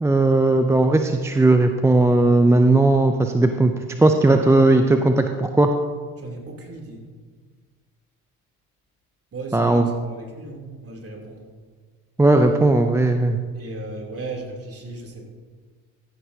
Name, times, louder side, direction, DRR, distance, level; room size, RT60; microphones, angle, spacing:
voice 1, 0.0-3.7 4.0-5.7 9.5-9.9 12.2-13.4, right 2 dB, 5° right, 6 dB, 0.5 m, -17 dB
voice 2, 6.2-7.0 9.3-11.4 13.5-15.2, right 3 dB, 30° right, -1 dB, 3.0 m, -36 dB
14.5 x 9.8 x 2.8 m, 1.5 s
hypercardioid pair, 65°, 44 cm